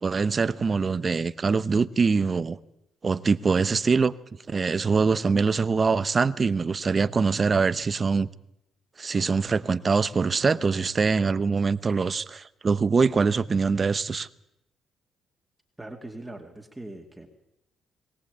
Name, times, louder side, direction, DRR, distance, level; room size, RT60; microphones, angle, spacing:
voice 1, 0.0-2.6 3.0-4.1 4.5-8.3 9.0-14.3, right 4 dB, 35° right, 15 dB, 0.9 m, -23 dB
voice 2, 15.8-17.3, right 2 dB, 10° right, 1 dB, 2.3 m, -41 dB
21.0 x 18.0 x 8.3 m, 0.83 s
cardioid pair, 90°, 0 cm